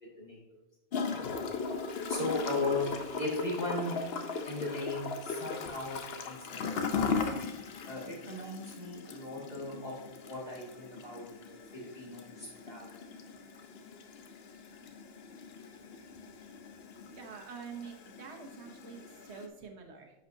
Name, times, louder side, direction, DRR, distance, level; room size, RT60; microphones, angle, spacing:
Gurgling / Toilet flush, 0.9-19.5, left 5 dB, 70° left, 0.9 m, -39 dB
voice 1, 2.1-2.9 3.2-3.9 4.4-6.4 7.9-9.9 10.3-12.9, left 2 dB, 40° left, -4 dB, 2.2 m, -37 dB
voice 2, 17.1-20.1, right 6 dB, 85° right, 3 dB, 1.2 m, -46 dB
9.7 x 5.6 x 2.7 m, 0.99 s
omnidirectional pair, 1.1 m